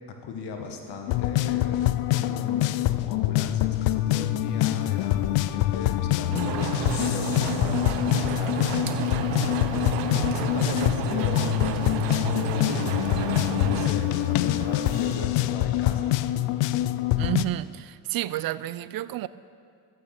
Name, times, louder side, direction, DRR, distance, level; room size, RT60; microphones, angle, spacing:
voice 1, 0.1-9.1 10.0-16.1, left 5 dB, 70° left, 1.6 m, -37 dB
sound 1, 1.1-17.4, left 14 dB, 85° left, 0.5 m, -25 dB
sound 2, 6.3-13.9, right 11 dB, 85° right, 0.8 m, -32 dB
sound 3, 6.4-15.3, right 4 dB, 30° right, 1.3 m, -41 dB
voice 2, 17.2-19.3, right 14 dB, 55° right, 0.5 m, -30 dB
14.0 x 8.8 x 6.0 m
supercardioid pair, 85°, 42 cm